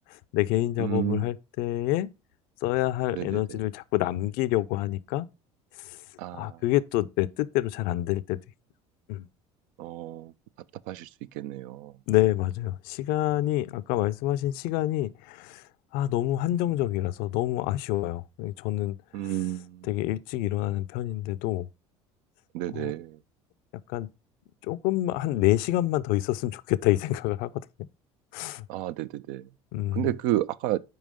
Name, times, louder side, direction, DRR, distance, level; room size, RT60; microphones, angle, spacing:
voice 1, 0.1-2.1 2.6-5.3 5.8-6.0 6.3-8.4 9.1-9.3 12.1-15.6 15.9-19.0 19.2-19.4 19.8-21.7 22.7-22.9 23.9-24.1 24.6-27.5 28.3-28.7 29.7-30.1, left 15 dB, 65° left, 0.4 m, -27 dB
voice 2, 0.8-1.3 3.1-3.4 6.2-6.6 9.8-10.3 10.9-11.1 11.3-11.9 19.1-19.9 22.5-23.2 28.7-29.5 29.9-30.8, right 14 dB, 65° right, 0.4 m, -31 dB
5.5 x 4.6 x 5.0 m
hypercardioid pair, 70°, 16 cm